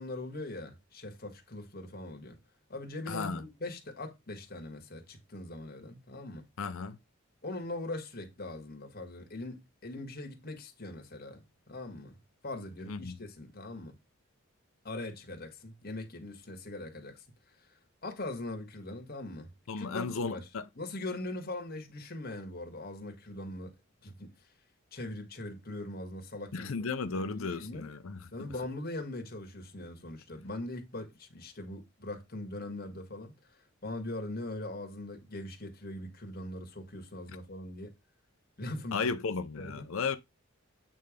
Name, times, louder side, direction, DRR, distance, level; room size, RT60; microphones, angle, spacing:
voice 1, 0.0-2.4 2.7-6.5 7.4-12.2 12.4-14.0 14.8-17.2 17.7-20.5 20.8-23.7 24.0-24.3 24.9-26.9 27.1-27.9 28.3-37.9 38.6-39.1 39.6-39.9, left 2 dB, 45° left, 1.8 m, -41 dB
voice 2, 3.1-3.4 6.6-7.0 12.9-13.2 19.7-20.6 26.5-28.5 38.9-40.2, left 4 dB, 70° left, 0.6 m, -34 dB
8.5 x 3.4 x 5.1 m
head